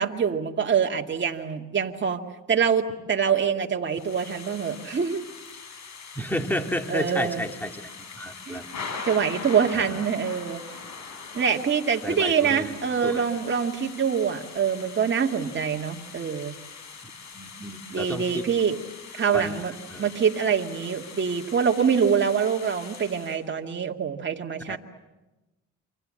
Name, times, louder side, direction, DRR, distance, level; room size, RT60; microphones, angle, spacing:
voice 1, 0.0-2.2 2.5-5.2 6.9-7.4 8.5-8.6 9.0-10.6 11.3-16.5 17.9-18.8 19.2-19.7 20.0-24.8, right 7 dB, 40° right, 2 dB, 2.2 m, -25 dB
Thunder / Rain, 3.9-23.4, left 5 dB, 65° left, 6.5 m, -42 dB
voice 2, 6.1-8.7 9.7-10.0 12.0-13.3 17.3-18.5 19.3-20.1 24.7-24.8, equal, 5° left, 5 dB, 2.6 m, -32 dB
28.0 x 25.5 x 7.7 m, 1.1 s
cardioid pair, 90°, 30 cm